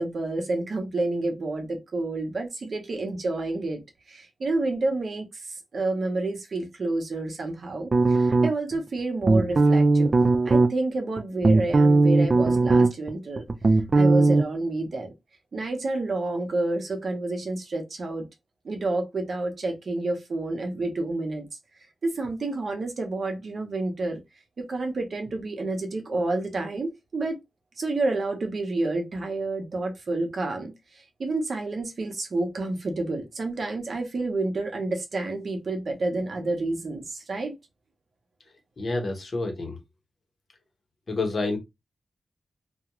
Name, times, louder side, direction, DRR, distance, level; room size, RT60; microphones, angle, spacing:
voice 1, 0.0-3.8 4.1-5.3 5.7-10.2 10.5-13.4 13.9-15.1 15.5-18.3 18.6-21.5 22.0-24.2 24.6-27.4 27.8-30.7 31.2-37.5, right 2 dB, 60° right, 0.8 m, -29 dB
sound 1, 7.9-8.8 9.2-10.7 11.2-13.1 13.4-14.4, right 3 dB, 45° right, 0.4 m, -18 dB
voice 2, 38.8-39.8 41.1-41.6, left 2 dB, 50° left, 1.0 m, -28 dB
2.4 x 2.3 x 3.0 m
cardioid pair, 60°, 0 cm